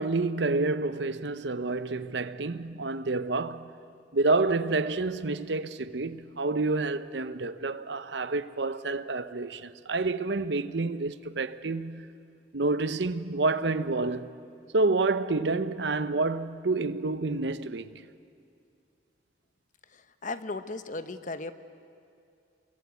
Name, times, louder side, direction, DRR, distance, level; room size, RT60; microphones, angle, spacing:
voice 1, 0.0-3.7 4.1-12.1 12.5-14.3 14.7-17.9, right 3 dB, 70° right, 0.8 m, -28 dB
voice 2, 19.9-21.5, left 3 dB, 45° left, 1.0 m, -36 dB
27.5 x 24.0 x 8.3 m
head